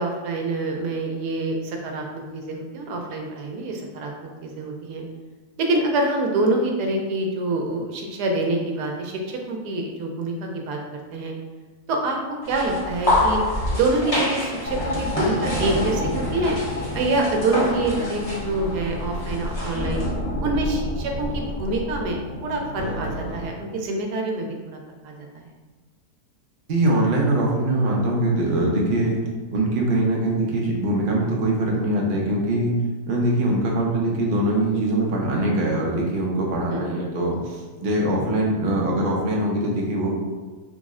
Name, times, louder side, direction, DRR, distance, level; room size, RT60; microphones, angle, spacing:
voice 1, 0.0-5.0 5.6-11.3 11.9-12.2 12.5-13.4 13.7-16.6 16.9-20.0 20.4-24.8 25.0-25.5 36.7-36.8, right 2 dB, 85° right, 2 dB, 1.1 m, -26 dB
sound 1, 12.4-20.1, left 1 dB, 25° left, 1.0 m, -27 dB
sound 2, 14.6-23.5, left 1 dB, 80° left, 1.7 m, -30 dB
voice 2, 26.7-29.2 29.5-32.7 33.1-40.1, right 1 dB, 55° right, -2 dB, 0.6 m, -22 dB
3.6 x 2.1 x 3.5 m, 1.3 s
omnidirectional pair, 1.7 m